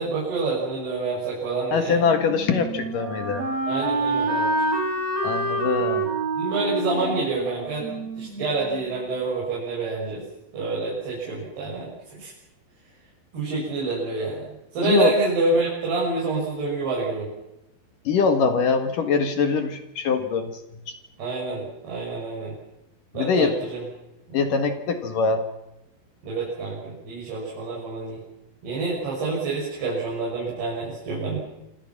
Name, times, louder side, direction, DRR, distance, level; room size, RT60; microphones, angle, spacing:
voice 1, 0.0-2.0 3.7-4.5 6.4-10.2 10.5-12.3 13.3-14.4 14.7-17.3 21.2-22.5 23.1-23.8 24.3-24.4 26.2-28.2 28.6-31.4, right 3 dB, 65° right, -5 dB, 8.5 m, -27 dB
voice 2, 1.7-3.5 5.2-6.1 14.8-15.1 18.0-20.6 20.9-21.0 23.2-23.5 24.3-25.4, left 5 dB, 55° left, 7 dB, 2.9 m, -23 dB
Wind instrument woodwind instrument, 2.0-8.9, right 2 dB, 40° right, 5.3 m, -27 dB
27.0 x 26.5 x 6.0 m, 0.91 s
omnidirectional pair, 5.1 m